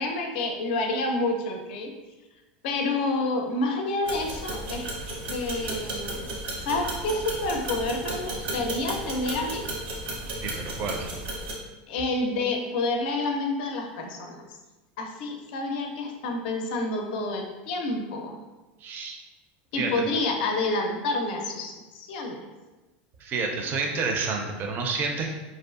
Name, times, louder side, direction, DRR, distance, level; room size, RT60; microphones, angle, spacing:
voice 1, 0.0-1.9 2.6-4.9 5.3-6.3 6.6-9.6 11.9-14.4 15.0-18.4 19.7-22.4, left 2 dB, 75° left, 3 dB, 0.4 m, -28 dB
sound 1, 4.0-11.5, right 2 dB, 85° right, 0.7 m, -34 dB
voice 2, 10.4-11.1 18.8-19.2 19.8-19.9 23.2-25.3, right 4 dB, 40° right, 2 dB, 0.4 m, -29 dB
2.6 x 2.3 x 2.3 m, 1.1 s
supercardioid pair, 120°, 5 cm